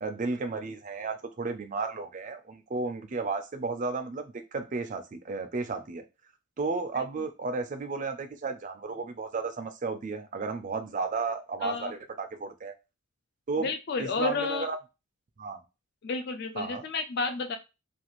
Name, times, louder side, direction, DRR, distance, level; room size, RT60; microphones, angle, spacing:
voice 1, 0.0-6.0 6.6-12.7 13.5-13.7 14.0-14.8 15.4-15.6 16.6-16.8, right 4 dB, 35° right, 7 dB, 0.3 m, -33 dB
voice 2, 11.6-11.9 13.6-14.7 16.0-17.6, left 4 dB, 45° left, 6 dB, 0.3 m, -31 dB
2.5 x 2.4 x 2.9 m, 0.27 s
head